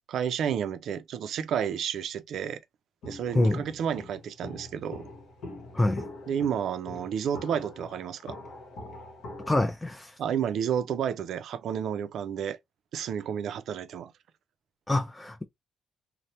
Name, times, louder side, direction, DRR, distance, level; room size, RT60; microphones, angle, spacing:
voice 1, 0.1-2.6 3.1-5.0 6.3-8.4 10.2-12.6 12.9-14.1, right 8 dB, 70° right, 0.4 m, -31 dB
Walk footsteps, 3.0-9.7, left 2 dB, 75° left, 0.9 m, -44 dB
voice 2, 5.7-6.1 9.5-10.2 14.9-15.4, left 2 dB, 10° left, 0.3 m, -26 dB
2.8 x 2.0 x 2.9 m
cardioid pair, 95°, 0 cm